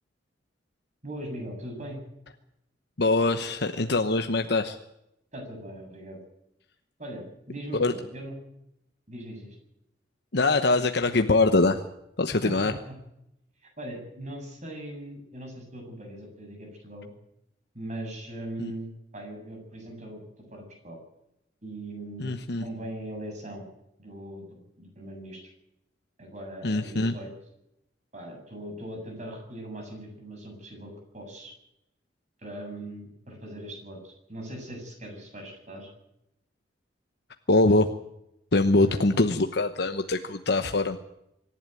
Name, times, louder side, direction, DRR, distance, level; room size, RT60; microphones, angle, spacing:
voice 1, 1.0-2.0 5.3-6.2 7.0-8.4 9.1-9.6 12.4-12.9 13.6-17.1 17.7-20.2 20.5-21.0 21.6-22.3 22.6-23.6 24.0-24.5 24.8-25.5 26.2-27.3 28.1-31.5 32.4-35.9 38.9-39.0, right 1 dB, 40° right, 3 dB, 7.5 m, -40 dB
voice 2, 3.0-4.8 7.8-7.9 10.3-11.8 12.2-12.7 18.6-18.7 22.2-22.7 26.6-27.1 37.5-37.9 38.5-41.0, left 2 dB, 60° left, 7 dB, 1.0 m, -23 dB
25.0 x 11.5 x 9.2 m, 0.83 s
head